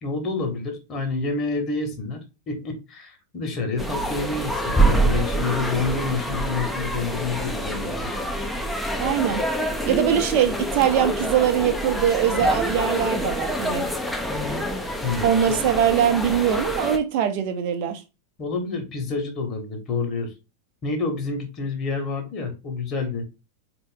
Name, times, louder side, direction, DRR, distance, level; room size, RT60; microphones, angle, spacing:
voice 1, 0.0-8.1 15.0-15.6 18.4-20.3 20.8-23.3, left 4 dB, 30° left, 1.6 m, -28 dB
sound 1, 3.8-17.0, right 1 dB, 5° left, 0.7 m, -26 dB
voice 2, 8.9-9.4 9.8-13.9 15.2-18.0, right 9 dB, 45° right, 0.8 m, -22 dB
4.3 x 3.0 x 3.6 m
figure-of-eight pair, 90°, 0 cm